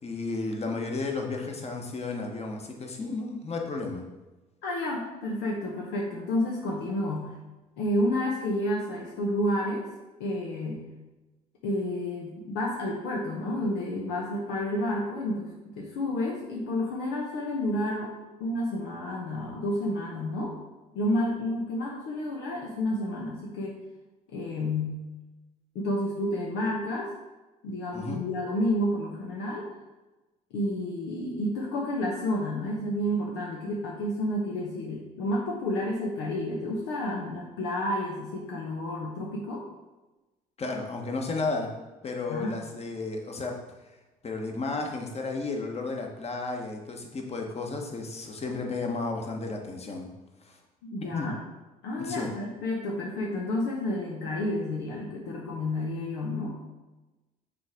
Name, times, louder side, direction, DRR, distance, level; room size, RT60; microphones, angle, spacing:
voice 1, 0.0-4.0 27.9-28.2 40.6-41.7 42.0-43.5 44.2-50.1 50.5-50.6 51.1-51.3 52.0-52.3, left 3 dB, 35° left, 2 dB, 1.3 m, -33 dB
voice 2, 4.6-7.4 7.8-9.9 10.2-10.8 11.6-18.1 18.4-20.6 20.9-23.8 24.3-25.0 25.7-27.1 27.6-29.7 30.5-39.7 42.3-42.6 50.8-51.4 51.8-56.6, left 1 dB, 80° left, -2 dB, 1.0 m, -30 dB
6.0 x 3.4 x 5.1 m, 1.1 s
hypercardioid pair, 65°, 18 cm